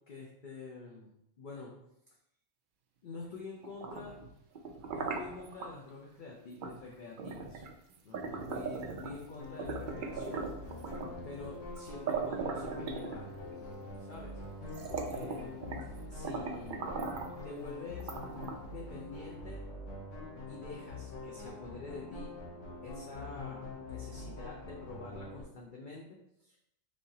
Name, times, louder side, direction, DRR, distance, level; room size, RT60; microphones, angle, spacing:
voice 1, 0.1-1.1 1.4-1.8 3.0-4.2 4.9-7.6 8.0-10.5 11.2-13.3 14.0-14.4 14.9-17.0 17.4-18.1 18.7-19.6 20.5-22.3 22.8-26.6, left 3 dB, 50° left, -2 dB, 0.7 m, -47 dB
sound 1, 3.6-5.7 6.6-6.8 7.2-9.3 9.6-11.2 11.8-11.9 12.1-13.6 14.2-14.3 14.7-15.9 16.2-17.4 18.0-18.8, right 4 dB, 65° right, 0.5 m, -39 dB
sound 2, 9.4-25.4, left 2 dB, 70° left, 1.4 m, -45 dB
5.2 x 3.6 x 2.7 m, 0.80 s
omnidirectional pair, 1.3 m